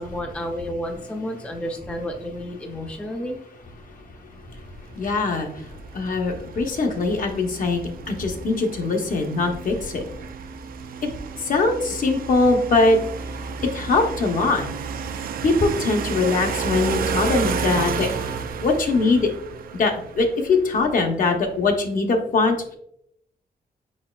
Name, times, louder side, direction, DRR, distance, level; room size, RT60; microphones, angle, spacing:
voice 1, 0.0-3.4, equal, 5° left, 3 dB, 0.5 m, -31 dB
voice 2, 3.8-4.6 4.9-10.1 11.0-11.1 11.4-13.0 13.7-14.7 15.4-18.3 18.6-19.3 19.7-22.8, left 3 dB, 55° left, 3 dB, 0.7 m, -22 dB
sound 1, 5.0-21.2, right 5 dB, 60° right, 0.4 m, -31 dB
5.1 x 4.2 x 2.3 m, 0.73 s
wide cardioid pair, 135°, 16 cm